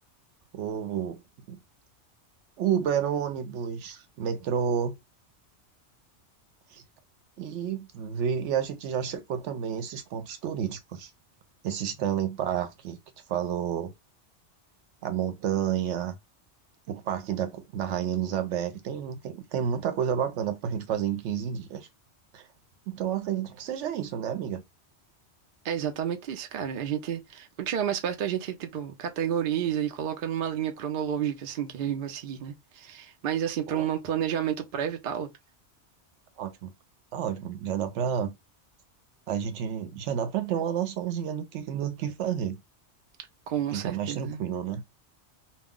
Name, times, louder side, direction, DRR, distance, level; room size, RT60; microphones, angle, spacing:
voice 1, 0.5-1.2 1.5-1.6 2.6-5.0 6.7-6.8 7.4-11.1 11.6-13.0 13.3-13.9 15.0-16.2 16.9-21.9 22.3-22.5 22.9-24.6 33.7-33.9 36.4-36.7 37.1-38.3 39.3-42.6 43.7-44.8, right 8 dB, 85° right, 0.9 m, -30 dB
voice 2, 25.6-35.3 43.5-44.4, right 9 dB, 60° right, 0.7 m, -30 dB
2.3 x 2.2 x 3.5 m
omnidirectional pair, 1.2 m